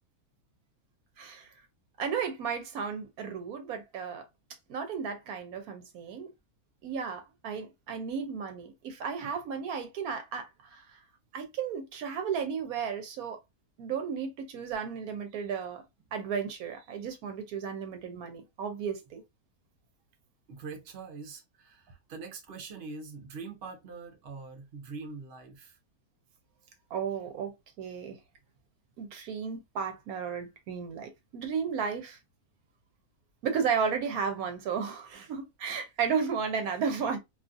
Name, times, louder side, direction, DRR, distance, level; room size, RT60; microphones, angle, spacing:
voice 1, 1.2-1.5 2.0-4.2 4.7-6.3 6.8-10.8 11.3-13.4 13.8-15.8 16.1-19.2 26.9-28.2 29.0-32.2 33.4-37.2, right 6 dB, 75° right, 1.1 m, -34 dB
voice 2, 20.5-25.8, right 4 dB, 50° right, 0.8 m, -43 dB
2.7 x 2.4 x 2.5 m
omnidirectional pair, 1.6 m